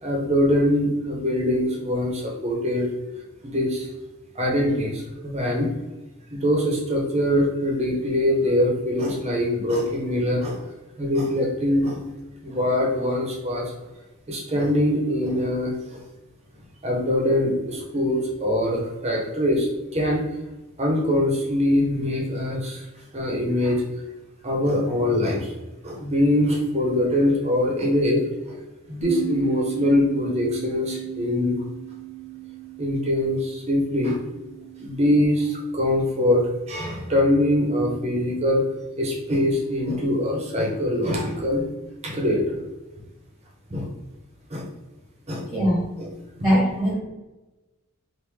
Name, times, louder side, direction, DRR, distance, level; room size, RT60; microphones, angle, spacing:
voice 1, 0.0-2.9 3.4-3.9 4.3-5.7 6.3-10.6 11.0-12.0 12.4-13.7 14.3-16.0 16.8-20.2 20.8-22.9 23.1-23.8 24.4-25.5 25.8-28.6 28.9-31.6 32.8-34.2 34.8-38.6 39.0-41.6 42.0-42.6 43.7-43.9 44.5-44.7 45.3-45.5 46.0-46.1, left 1 dB, 30° right, -1 dB, 0.7 m, -23 dB
Bass guitar, 29.0-35.3, right 17 dB, 80° left, 0.6 m, -36 dB
voice 2, 45.5-45.9 46.4-47.0, equal, 5° right, -8 dB, 1.0 m, -21 dB
3.4 x 2.5 x 3.1 m, 1.1 s
head